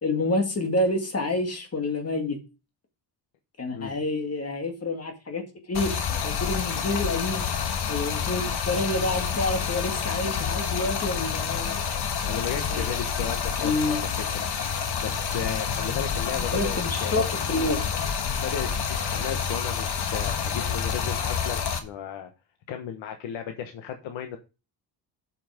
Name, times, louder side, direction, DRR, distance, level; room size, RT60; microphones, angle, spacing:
voice 1, 0.0-2.4 3.6-7.5 7.9-11.8 12.7-12.9 13.6-14.0 16.5-17.8, left 2 dB, 35° left, 2.2 m, -28 dB
Stream, 5.7-21.8, left 7 dB, 60° left, 1.7 m, -28 dB
voice 2, 12.3-14.4 15.0-17.3 18.4-18.7 19.0-22.3 22.7-24.4, left 8 dB, 90° left, 1.3 m, -35 dB
7.8 x 5.8 x 5.0 m
cardioid pair, 115°, 44 cm